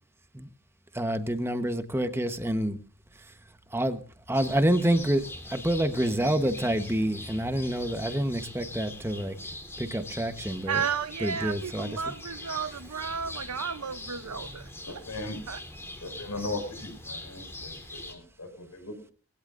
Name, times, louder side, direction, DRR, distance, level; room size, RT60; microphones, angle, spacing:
voice 1, 0.9-2.8 3.7-4.0 4.3-9.4 9.8-10.9 11.2-12.1, right 1 dB, 10° right, 1.2 m, -27 dB
sound 1, 4.3-18.1, left 2 dB, 10° left, 3.3 m, -42 dB
voice 2, 10.7-14.6 15.5-15.6, right 7 dB, 90° right, 0.8 m, -32 dB
voice 3, 14.8-15.4 16.0-19.1, left 2 dB, 85° left, 6.2 m, -38 dB
21.5 x 17.0 x 2.6 m
head